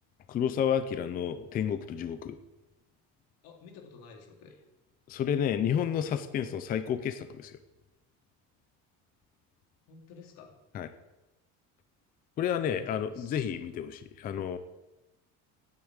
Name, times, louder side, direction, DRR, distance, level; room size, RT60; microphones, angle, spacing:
voice 1, 0.3-2.4 5.1-7.6 10.7-10.9 12.4-14.6, left 8 dB, 25° left, 11 dB, 0.4 m, -30 dB
voice 2, 3.4-4.6 9.9-10.6 12.7-13.4, left 4 dB, 85° left, 2 dB, 2.6 m, -51 dB
9.6 x 8.3 x 8.0 m, 1.0 s
cardioid pair, 180°, 35 cm